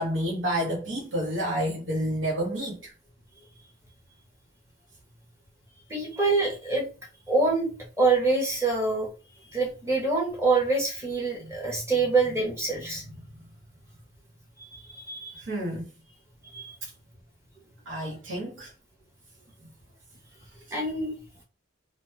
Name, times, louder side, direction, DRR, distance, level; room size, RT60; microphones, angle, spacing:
voice 1, 0.0-2.9 11.4-11.5 15.5-15.9 17.9-18.7, equal, 70° right, 0.9 m, -29 dB
voice 2, 5.9-6.9 7.3-7.7 8.0-9.1 9.5-13.0 15.0-15.3 16.5-16.7 20.7-21.1, right 3 dB, 15° right, 1.0 m, -25 dB
2.9 x 2.1 x 3.2 m
head